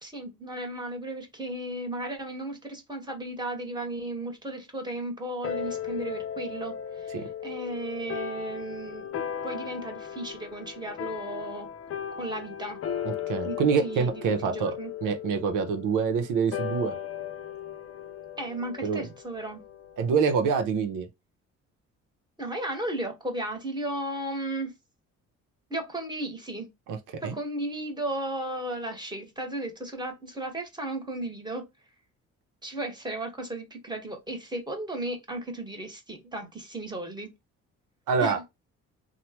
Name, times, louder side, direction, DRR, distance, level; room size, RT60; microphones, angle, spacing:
voice 1, 0.0-11.7 12.2-12.8 13.4-14.9 18.4-19.7 22.4-24.7 25.7-26.7 27.2-31.7 32.6-37.3 38.2-38.4, right 1 dB, 15° right, 1.2 m, -35 dB
sound 1, 5.4-20.2, left 8 dB, 50° left, 0.5 m, -37 dB
voice 2, 13.0-14.7 15.0-16.9 18.8-19.0 20.0-21.1 26.9-27.0 27.2-27.4 38.1-38.4, right 5 dB, 90° right, 0.8 m, -26 dB
3.2 x 2.2 x 2.8 m
cardioid pair, 90°, 30 cm